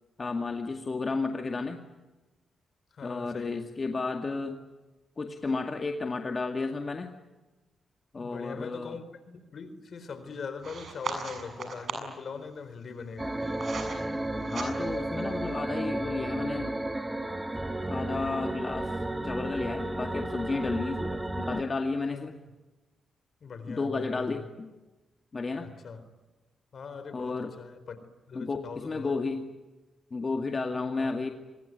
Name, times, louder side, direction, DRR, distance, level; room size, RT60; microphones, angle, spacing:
voice 1, 0.2-1.8 3.0-4.6 5.2-7.1 8.1-9.0 14.5-16.7 17.9-18.9 19.2-22.3 23.7-24.7 25.3-25.7 27.1-27.5 28.4-29.4 30.1-31.3, left 3 dB, 40° left, 4 dB, 2.1 m, -32 dB
voice 2, 2.9-3.7 8.1-13.4 21.1-21.3 22.1-22.3 23.4-24.5 25.6-26.1 26.7-28.0 28.3-29.2 31.0-31.2, left 5 dB, 60° left, 12 dB, 4.0 m, -41 dB
sound 1, 10.6-12.2 13.0-14.0 14.4-15.1, right 5 dB, 60° right, 7.1 m, -37 dB
sound 2, 13.2-21.6, right 1 dB, 15° right, 1.7 m, -33 dB
26.0 x 22.0 x 9.5 m, 1.1 s
supercardioid pair, 60°, 0 cm